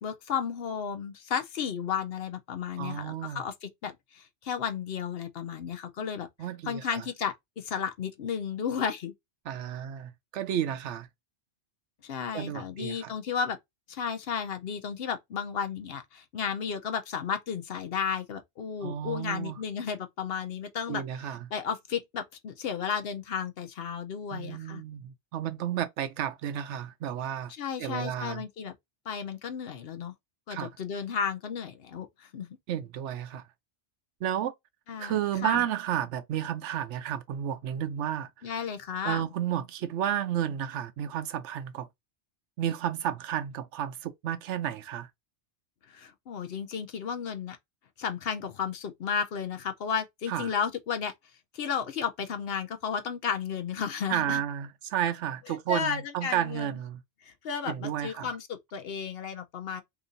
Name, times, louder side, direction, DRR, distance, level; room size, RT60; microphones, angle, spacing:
voice 1, 0.0-6.3 6.7-9.1 12.0-13.6 13.9-21.0 21.5-24.8 27.6-28.7 29.1-30.1 30.5-32.5 34.9-35.6 38.4-39.3 45.9-47.6 48.0-51.1 51.5-54.4 55.7-56.7 57.2-59.8, left 7 dB, 65° left, 0.8 m, -33 dB
voice 2, 2.8-3.4 6.4-7.0 9.5-11.1 12.3-13.1 18.8-19.6 20.9-21.5 24.3-27.5 27.8-28.4 30.5-30.7 32.7-33.4 34.2-34.5 35.0-38.3 39.0-41.9 42.6-45.1 50.3-50.5 54.1-57.0 57.7-58.4, right 10 dB, 80° right, 0.9 m, -32 dB
2.9 x 2.6 x 3.8 m
omnidirectional pair, 1.2 m